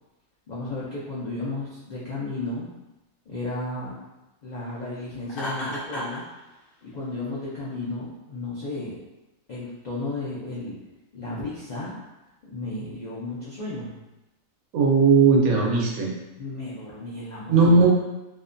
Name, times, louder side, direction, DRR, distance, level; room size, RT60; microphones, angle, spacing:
voice 1, 0.5-2.7 3.3-4.0 4.4-6.2 6.8-9.0 9.5-10.8 11.1-11.9 12.4-13.9 16.4-17.9, left 2 dB, 85° left, -8 dB, 0.3 m, -33 dB
Laughter, 5.3-6.2, equal, 45° left, 0.9 m, -32 dB
voice 2, 14.7-16.1 17.5-17.9, right 4 dB, 85° right, -2 dB, 1.1 m, -17 dB
2.8 x 2.1 x 2.5 m, 0.99 s
omnidirectional pair, 1.5 m